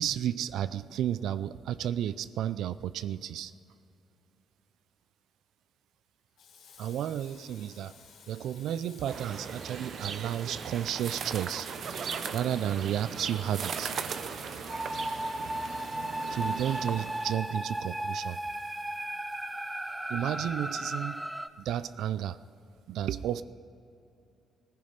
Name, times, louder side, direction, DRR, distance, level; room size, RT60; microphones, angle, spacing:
voice 1, 0.0-3.5 6.8-7.9 8.3-11.7 12.3-13.9 16.3-18.4 20.1-21.2 21.6-22.4 22.9-23.4, right 10 dB, 80° right, 15 dB, 0.3 m, -32 dB
Water tap faucet / Sink (filling or washing), 6.4-21.1, left 6 dB, 85° left, 3.2 m, -55 dB
sound 1, 9.1-17.4, right 6 dB, 60° right, 0.8 m, -38 dB
sound 2, 14.7-21.5, right 1 dB, 10° right, 0.6 m, -35 dB
17.0 x 14.5 x 5.2 m, 2.7 s
cardioid pair, 90°, 0 cm